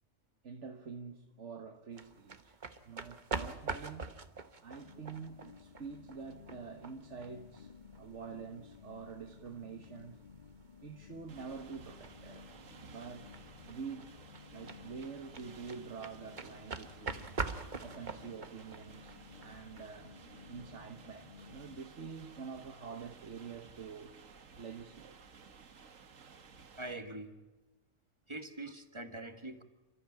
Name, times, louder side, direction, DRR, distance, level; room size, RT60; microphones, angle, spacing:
voice 1, 0.4-2.6 2.8-4.2 4.6-10.2 10.8-12.5 12.8-14.1 14.5-17.4 17.8-20.1 20.5-24.2 24.5-25.2, right 5 dB, 65° right, 1.7 m, -47 dB
sound 1, 1.9-19.8, right 4 dB, 40° right, 1.3 m, -45 dB
sound 2, 4.8-21.8, left 6 dB, 45° left, 1.1 m, -55 dB
sound 3, 11.3-27.0, right 5 dB, 80° right, 1.8 m, -56 dB
voice 2, 26.8-27.3 28.3-29.6, right 2 dB, 20° right, 1.8 m, -43 dB
29.0 x 14.0 x 8.7 m
omnidirectional pair, 1.3 m